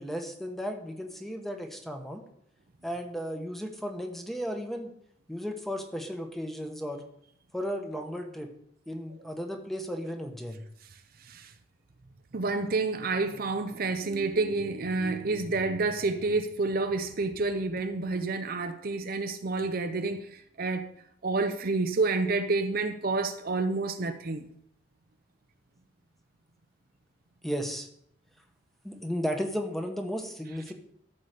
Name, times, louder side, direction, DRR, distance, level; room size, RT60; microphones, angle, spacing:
voice 1, 0.0-2.2 2.8-4.9 5.3-7.0 7.5-8.5 8.9-10.7 27.4-27.9 28.8-30.7, equal, ahead, 1.1 m, -34 dB
voice 2, 12.3-20.9 21.2-24.5, right 3 dB, 50° right, 0.7 m, -29 dB
13.5 x 4.9 x 6.6 m
head